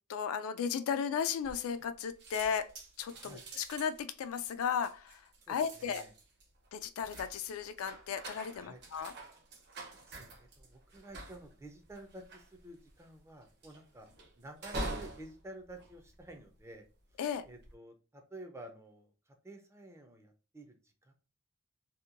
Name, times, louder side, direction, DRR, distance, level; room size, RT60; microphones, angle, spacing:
voice 1, 0.1-2.7 3.0-6.0 6.7-9.1 17.2-17.5, left 7 dB, 70° left, 0.3 m, -35 dB
sound 1, 1.4-1.9 2.2-16.8 17.3-17.7, right 2 dB, 50° right, 0.6 m, -46 dB
voice 2, 5.5-6.1 8.5-8.8 9.7-14.1 14.4-16.8 17.4-21.1, right 1 dB, 10° right, 0.4 m, -51 dB
2.8 x 2.2 x 2.5 m
head